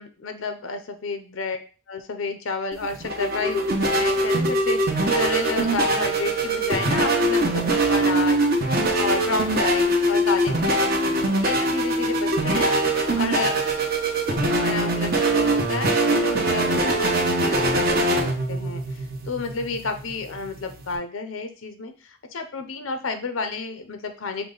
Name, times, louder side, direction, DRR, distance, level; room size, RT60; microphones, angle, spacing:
voice 1, 0.0-1.6 1.9-8.4 9.0-12.8 13.1-13.6 14.3-24.5, left 4 dB, 80° left, 8 dB, 0.6 m, -31 dB
sound 1, 2.7-21.0, right 1 dB, 45° right, 0.9 m, -22 dB
5.8 x 2.2 x 3.8 m, 0.36 s
head